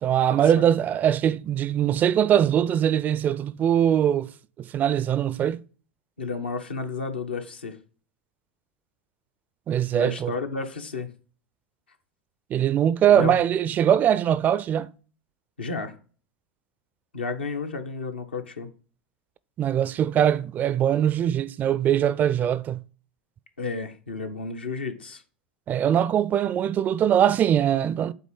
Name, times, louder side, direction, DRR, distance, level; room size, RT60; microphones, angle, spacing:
voice 1, 0.0-4.3 4.6-5.6 9.7-10.3 12.5-14.9 19.6-22.8 25.7-28.1, right 10 dB, 30° right, 0.4 m, -22 dB
voice 2, 6.2-7.8 9.9-11.1 13.1-13.4 15.6-16.0 17.1-18.7 23.6-25.2, left 4 dB, 80° left, 1.0 m, -32 dB
8.3 x 3.8 x 5.1 m
figure-of-eight pair, 80°, 6 cm